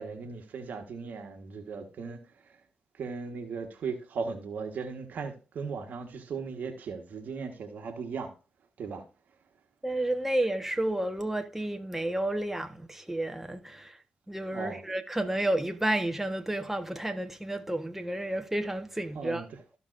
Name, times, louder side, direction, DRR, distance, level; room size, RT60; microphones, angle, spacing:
voice 1, 0.0-2.2 3.0-8.3 8.8-9.0 14.5-14.8 19.1-19.6, right 5 dB, 65° right, 1.4 m, -37 dB
voice 2, 9.8-14.0 14.3-19.5, right 1 dB, 10° right, 1.2 m, -31 dB
14.0 x 5.3 x 2.6 m
hypercardioid pair, 45°, 3 cm